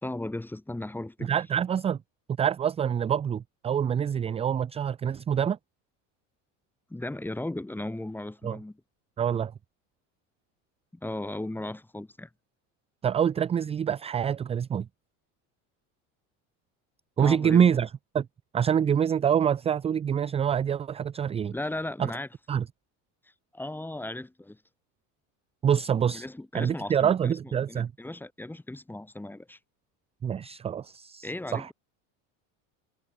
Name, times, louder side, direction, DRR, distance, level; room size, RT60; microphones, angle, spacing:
voice 1, 0.0-1.3 6.9-8.8 10.9-12.3 17.2-17.6 21.5-22.3 23.5-24.6 26.1-29.6 31.2-31.7, left 1 dB, 5° left, 1.4 m, -36 dB
voice 2, 1.2-2.0 2.4-5.6 8.4-8.6 9.2-9.5 13.0-14.9 17.2-18.3 18.5-21.5 22.0-22.1 22.5-22.6 25.6-26.3 26.5-27.9 30.2-31.7, right 8 dB, 15° right, 0.4 m, -26 dB
supercardioid pair, 115°, 38 cm